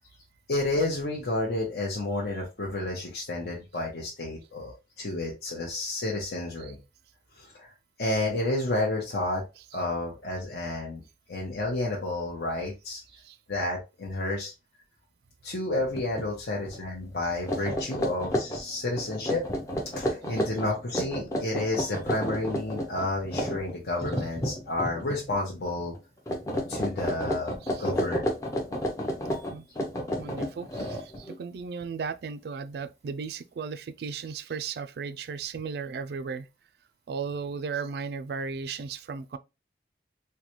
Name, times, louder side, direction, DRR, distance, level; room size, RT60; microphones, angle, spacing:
voice 1, 0.5-6.8 7.4-7.7 8.0-9.4 9.7-11.0 11.3-13.0 13.5-14.5 15.4-19.4 19.9-25.9 26.7-27.5 27.8-28.3, left 2 dB, 65° left, 0.8 m, -30 dB
sound 1, 15.9-16.3 16.6-16.8 17.3-25.4 25.7-26.0 26.3-31.4, equal, 20° left, 0.5 m, -31 dB
voice 2, 30.2-36.5 37.1-39.4, right 5 dB, 60° right, 0.3 m, -36 dB
3.8 x 2.2 x 2.9 m
head